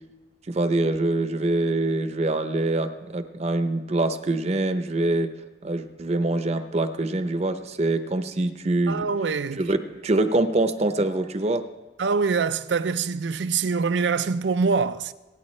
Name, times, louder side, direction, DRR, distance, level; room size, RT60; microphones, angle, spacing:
voice 1, 0.5-5.3 5.6-9.1 9.6-11.7, right 2 dB, 35° right, 0.7 m, -24 dB
voice 2, 8.9-9.6 12.0-15.1, right 5 dB, 85° right, 0.5 m, -24 dB
25.0 x 9.3 x 3.2 m
head